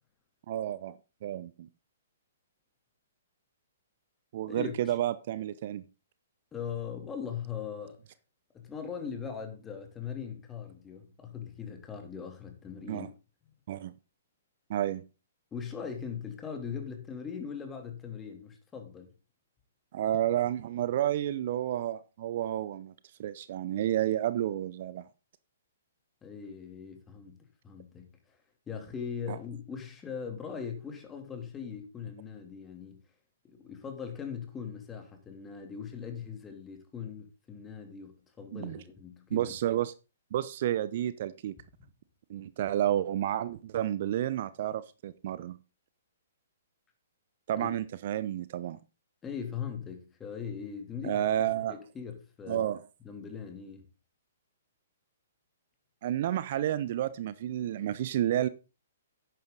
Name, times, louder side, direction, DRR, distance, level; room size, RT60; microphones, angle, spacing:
voice 1, 0.5-1.7 4.3-5.9 12.9-13.1 13.7-13.9 14.7-15.0 19.9-22.9 23.2-25.1 29.3-29.4 38.5-38.8 39.3-39.9 40.3-41.5 42.3-45.6 47.5-48.8 51.0-51.7 52.5-52.8 56.0-58.5, right 12 dB, 50° right, 0.6 m, -31 dB
voice 2, 4.5-5.0 6.5-8.0 8.5-13.1 15.5-19.1 26.2-27.4 27.6-28.4 28.7-33.0 33.4-39.5 47.6-47.7 49.2-51.2 51.7-52.7 53.0-53.8, left 7 dB, 15° left, 2.8 m, -40 dB
11.0 x 9.1 x 3.9 m
figure-of-eight pair, 120°, 0 cm